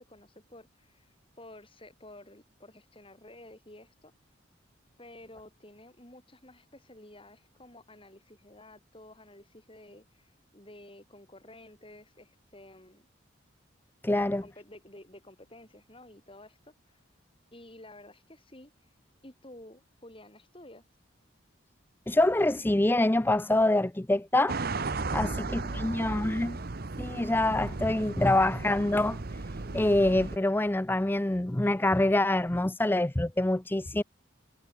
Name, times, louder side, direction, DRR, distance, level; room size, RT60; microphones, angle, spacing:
voice 1, 0.0-4.1 5.0-13.1 14.2-17.0 17.5-18.7 19.2-20.9 25.2-26.5, left 1 dB, 25° left, 5.6 m, -52 dB
voice 2, 14.0-14.4 22.1-24.6 25.1-26.6 27.0-29.4 29.7-34.0, left 1 dB, 10° left, 0.5 m, -26 dB
sound 1, 24.5-30.4, right 3 dB, 50° right, 0.9 m, -35 dB
head